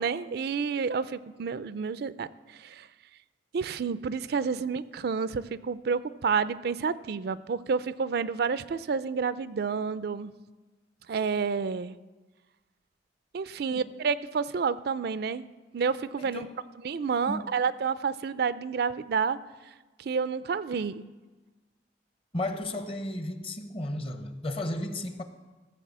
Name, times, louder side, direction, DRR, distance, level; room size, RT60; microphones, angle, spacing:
voice 1, 0.0-2.9 3.5-10.3 11.1-12.0 13.3-16.5 16.8-19.4 20.0-21.0, right 5 dB, 65° right, 0.4 m, -29 dB
voice 2, 16.2-16.6 17.2-17.5 20.7-20.8 22.3-25.2, left 1 dB, 35° left, 0.9 m, -34 dB
15.0 x 6.9 x 7.3 m
head